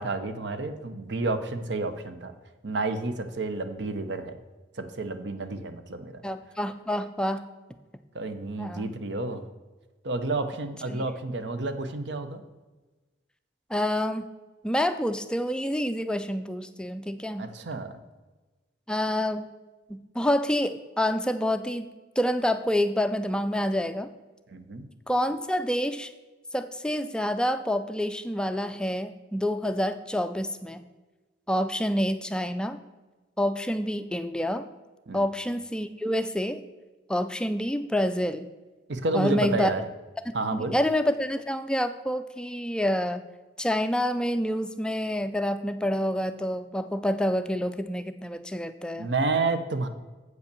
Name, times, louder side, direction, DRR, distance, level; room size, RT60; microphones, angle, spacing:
voice 1, 0.0-2.3 2.6-4.3 4.8-6.2 8.1-9.4 10.0-12.4 17.4-17.9 24.5-24.9 35.1-35.2 38.9-39.8 40.3-40.8 49.0-49.9, right 3 dB, 75° right, 9 dB, 0.8 m, -30 dB
voice 2, 6.2-7.4 8.6-8.9 10.9-11.0 13.7-14.3 14.6-17.5 18.9-19.5 19.9-24.1 25.1-26.1 26.5-30.8 31.5-32.8 33.4-34.7 35.1-36.6 37.1-38.5 39.1-39.7 40.5-43.2 43.6-49.1, equal, 5° left, 9 dB, 0.3 m, -27 dB
7.9 x 5.4 x 6.7 m, 1.2 s
head